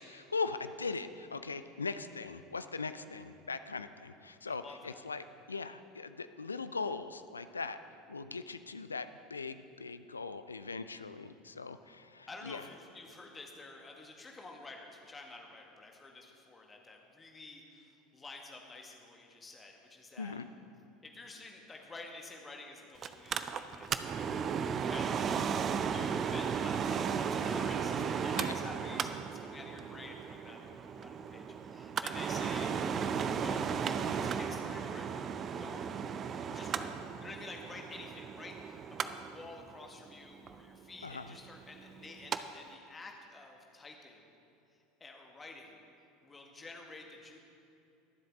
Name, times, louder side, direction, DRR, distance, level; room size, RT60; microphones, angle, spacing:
voice 1, 0.0-7.8 8.1-12.6 20.2-20.5 28.4-28.5 41.0-41.4, left 4 dB, 80° left, 12 dB, 0.4 m, -40 dB
voice 2, 4.5-5.0 12.3-20.4 21.0-24.5 24.9-32.7 33.4-33.9 34.2-35.2 35.6-35.8 36.5-36.9 37.2-44.3 45.0-45.8 46.2-47.4, left 3 dB, 20° left, 1 dB, 1.7 m, -50 dB
Mechanical fan, 23.0-42.4 42.7-42.8, right 7 dB, 35° right, 0.5 m, -35 dB
22.5 x 7.7 x 3.7 m, 2.8 s
figure-of-eight pair, 75°, 0 cm